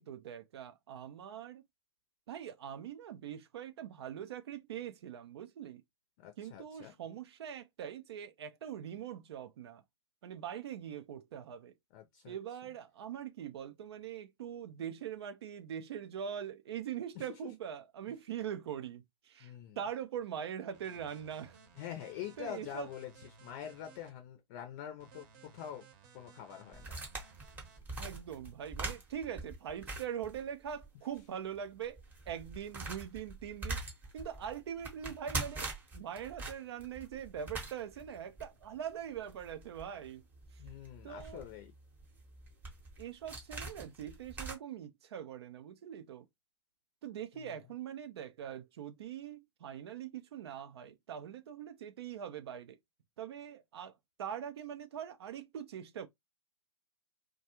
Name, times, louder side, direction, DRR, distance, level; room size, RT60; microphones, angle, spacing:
voice 1, 0.0-1.6 2.3-5.8 6.4-9.8 10.2-11.7 12.3-21.6 22.4-22.9 27.9-33.8 34.1-40.2 40.5-40.6 41.0-41.4 43.0-46.3 47.0-52.8 53.2-53.9 54.2-56.1, right 9 dB, 60° right, 0.4 m, -42 dB
voice 2, 6.2-6.9 11.9-12.4 17.2-17.5 19.4-19.8 21.8-23.1 23.4-25.8 26.1-26.9 40.6-41.7 47.3-47.5, left 10 dB, 40° left, 0.5 m, -45 dB
sound 1, 20.7-24.1 25.0-27.8, right 6 dB, 40° right, 0.8 m, -59 dB
sound 2, 26.7-30.9 31.2-31.3 31.8-44.5, right 2 dB, 10° right, 0.8 m, -43 dB
2.3 x 2.2 x 2.9 m
hypercardioid pair, 120°, 16 cm